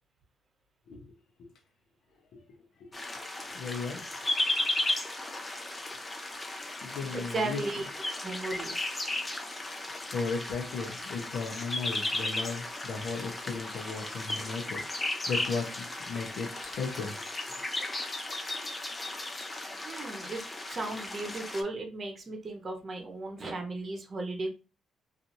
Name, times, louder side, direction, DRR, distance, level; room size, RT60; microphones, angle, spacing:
sound 1, 2.9-21.6, left 2 dB, 20° left, 0.5 m, -35 dB
voice 1, 3.5-4.0 6.8-7.6 10.1-17.5, left 4 dB, 75° left, 1 dB, 0.7 m, -36 dB
voice 2, 7.0-7.9 8.2-9.0 19.8-20.4 20.7-24.5, right 2 dB, 40° right, 3 dB, 0.8 m, -36 dB
2.7 x 2.5 x 2.6 m, 0.30 s
cardioid pair, 90°, 0 cm